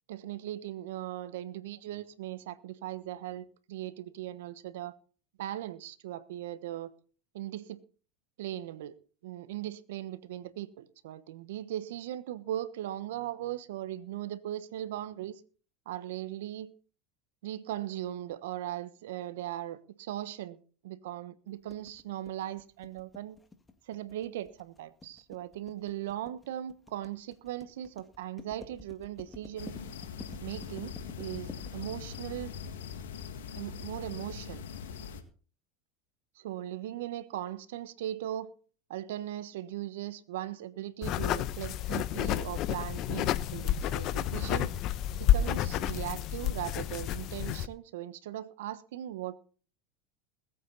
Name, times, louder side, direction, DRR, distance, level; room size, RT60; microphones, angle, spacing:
voice 1, 0.1-4.9 5.4-6.9 7.3-7.8 8.4-8.9 9.2-15.4 15.9-16.7 17.4-20.6 20.8-23.4 23.9-29.9 30.4-32.5 33.6-34.6 36.4-38.5 38.9-44.7 45.2-49.4, right 13 dB, 80° right, 1.2 m, -39 dB
sound 1, 21.7-33.3, left 3 dB, 20° left, 2.0 m, -50 dB
sound 2, 29.6-35.2, left 7 dB, 85° left, 2.0 m, -42 dB
sound 3, 41.0-47.7, left 11 dB, 55° left, 0.8 m, -30 dB
21.0 x 8.6 x 4.1 m
hypercardioid pair, 100°, 0 cm